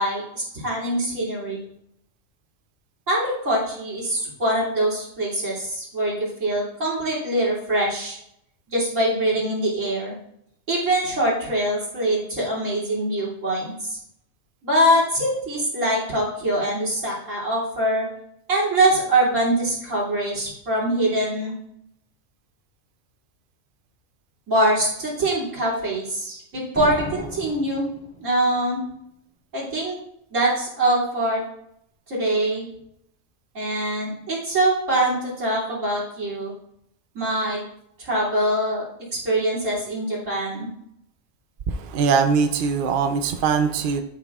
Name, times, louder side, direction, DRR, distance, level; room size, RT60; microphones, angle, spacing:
voice 1, 0.0-1.6 3.1-8.2 8.7-10.1 10.7-14.0 14.6-18.1 18.5-21.5 24.5-27.9 28.2-28.8 29.5-30.0 30.3-31.4 32.1-32.7 33.6-36.5 37.2-37.6 38.0-38.8 39.2-40.7, right 1 dB, 70° right, -5 dB, 3.3 m, -23 dB
sound 1, 26.8-28.6, right 1 dB, 5° right, 2.4 m, -34 dB
voice 2, 41.7-44.0, right 5 dB, 55° right, 7 dB, 0.7 m, -21 dB
11.5 x 5.6 x 2.4 m, 0.75 s
omnidirectional pair, 1.4 m